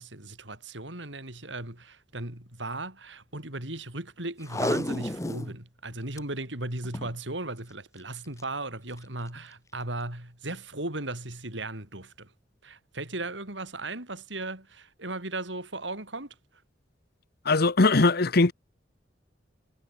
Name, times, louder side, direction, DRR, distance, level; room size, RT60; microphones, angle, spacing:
voice 1, 0.0-12.3 12.6-16.3, right 2 dB, 80° right, 6.1 m, -36 dB
Packing tape duct tape, 4.4-5.5 5.9-6.0 6.2-6.3 6.8-7.2 8.2-8.4 9.0-9.1, left 1 dB, 15° left, 1.3 m, -31 dB
voice 2, 17.4-18.5, left 3 dB, 55° left, 1.0 m, -20 dB
head